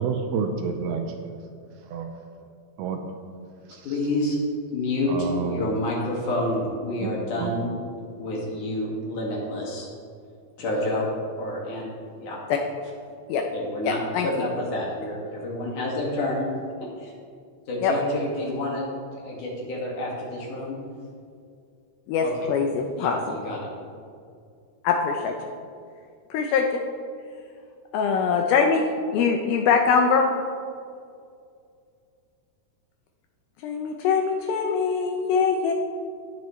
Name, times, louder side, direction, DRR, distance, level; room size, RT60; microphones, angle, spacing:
voice 1, 0.0-1.5 1.8-2.3 2.8-3.0 3.7-3.9 5.1-5.6 7.0-7.1 7.4-7.6, right 6 dB, 80° right, 5 dB, 2.5 m, -29 dB
voice 2, 3.8-4.4 4.7-7.7 8.2-9.9 10.6-11.1 11.4-11.9 12.2-12.4 13.5-16.5 17.0-17.1 17.7-18.9 19.1-20.8 22.2-22.3 23.0-23.6, left 1 dB, 55° left, -3 dB, 3.2 m, -28 dB
voice 3, 13.8-14.3 17.8-17.9 22.1-23.4 24.8-25.5 26.3-26.8 27.9-28.8 29.1-30.3 33.6-35.7, left 5 dB, 80° left, 3 dB, 2.3 m, -23 dB
18.0 x 7.7 x 3.2 m, 2.3 s
omnidirectional pair, 4.7 m